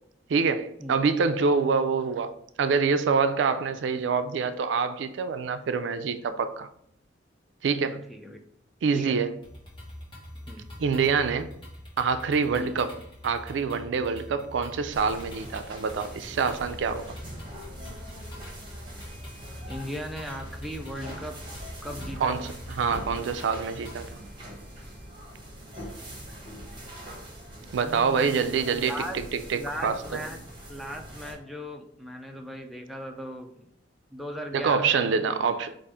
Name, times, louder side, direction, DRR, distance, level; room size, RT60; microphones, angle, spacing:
voice 1, 0.3-2.3 2.6-6.7 7.6-8.1 8.8-9.3 10.8-11.5 12.0-12.9 13.2-17.2 22.2-24.2 27.7-30.0 34.5-35.8, right 5 dB, 85° right, 0.4 m, -26 dB
voice 2, 7.8-8.4 8.9-9.2 10.5-10.7 12.6-12.7 19.7-21.4 21.8-22.5 27.8-28.4 28.7-29.2 29.5-30.4 30.7-33.6 34.1-34.9, equal, ahead, 0.4 m, -38 dB
sound 1, 9.4-24.1, left 1 dB, 30° left, 1.3 m, -44 dB
sound 2, 14.9-31.3, equal, 25° right, 1.3 m, -43 dB
4.9 x 2.5 x 3.4 m
head